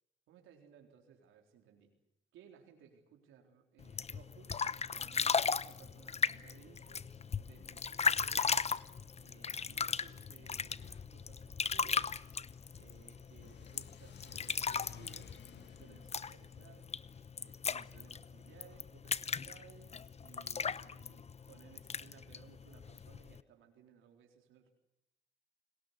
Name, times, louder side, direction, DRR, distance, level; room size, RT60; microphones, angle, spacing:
voice 1, 0.3-1.9 2.3-4.6 4.9-8.7 9.2-12.2 12.7-16.9 17.4-24.7, right 8 dB, 90° right, 3 dB, 4.0 m, -61 dB
sound 1, 3.8-23.4, left 6 dB, 30° left, 0.9 m, -37 dB
Car / Accelerating revving vroom, 12.1-18.8, left 8 dB, 60° left, 1.7 m, -58 dB
29.0 x 19.5 x 8.2 m, 0.86 s
cardioid pair, 90°, 20 cm